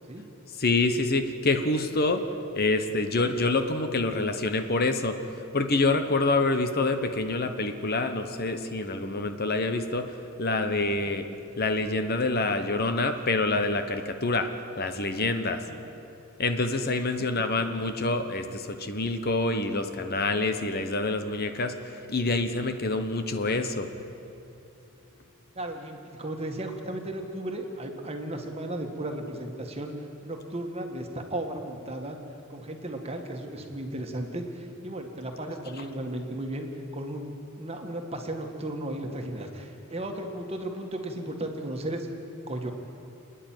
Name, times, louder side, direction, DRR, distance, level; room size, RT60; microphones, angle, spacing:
voice 1, 0.6-2.2 2.5-5.2 5.5-10.1 10.4-11.2 11.6-14.5 14.8-15.6 16.4-23.9, left 2 dB, 45° left, 8 dB, 1.0 m, -26 dB
voice 2, 25.5-29.9 30.2-32.2 32.5-36.7 36.9-42.1 42.5-42.7, right 1 dB, 30° right, 3 dB, 1.8 m, -35 dB
28.5 x 10.0 x 9.2 m, 2.7 s
head